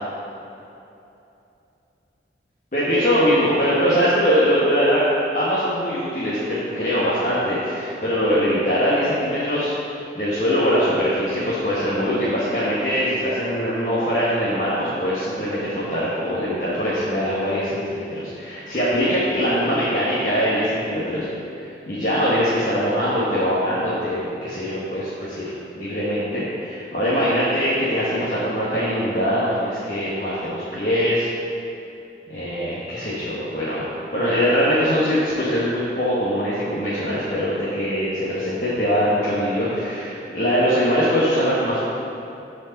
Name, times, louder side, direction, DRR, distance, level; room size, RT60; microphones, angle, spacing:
voice 1, 2.7-5.0 5.3-21.2 21.9-25.5 25.7-31.3 32.3-33.8 34.1-41.8, equal, 45° left, -10 dB, 1.5 m, -22 dB
13.5 x 5.1 x 4.1 m, 2.8 s
head